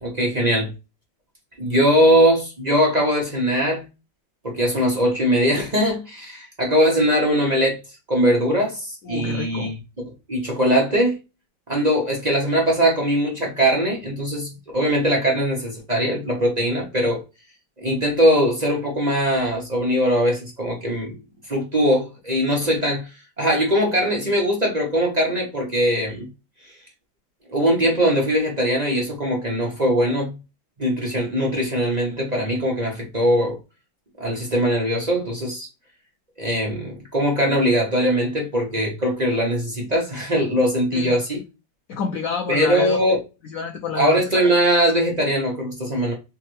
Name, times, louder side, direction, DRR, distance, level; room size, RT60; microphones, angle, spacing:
voice 1, 0.0-0.7 1.6-3.8 4.4-7.8 8.1-9.7 10.3-11.2 11.7-17.2 17.8-21.2 21.5-23.1 23.4-26.3 27.5-30.4 30.8-33.6 34.2-35.7 36.4-41.4 42.5-43.2 44.0-46.1, equal, 30° right, 0.8 m, -21 dB
voice 2, 9.0-9.7 40.9-41.1 41.9-43.0 43.4-44.2, left 6 dB, 90° left, 0.7 m, -28 dB
3.6 x 3.2 x 3.1 m
omnidirectional pair, 2.1 m